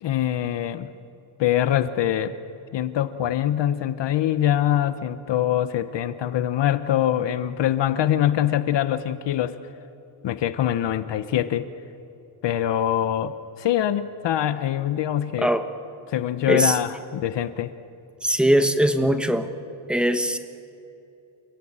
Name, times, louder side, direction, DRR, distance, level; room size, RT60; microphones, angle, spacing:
voice 1, 0.0-0.9 1.4-2.3 2.7-9.5 10.2-11.7 12.4-15.5 16.1-17.7, left 11 dB, 60° left, 12 dB, 1.0 m, -24 dB
voice 2, 18.2-19.5 19.9-20.4, equal, ahead, 7 dB, 1.3 m, -20 dB
29.5 x 16.5 x 8.8 m, 2.7 s
cardioid pair, 130°, 48 cm